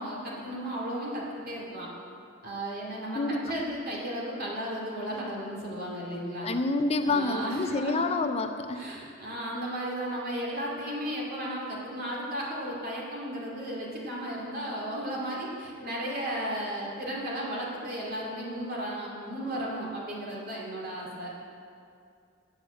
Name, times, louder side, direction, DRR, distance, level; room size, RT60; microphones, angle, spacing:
voice 1, 0.0-1.9 2.4-6.5 7.0-8.2 8.8-21.3, equal, 50° right, -3 dB, 2.3 m, -34 dB
voice 2, 3.1-3.5 6.4-8.9, left 3 dB, 30° left, 8 dB, 0.4 m, -28 dB
7.7 x 7.2 x 7.7 m, 2.4 s
head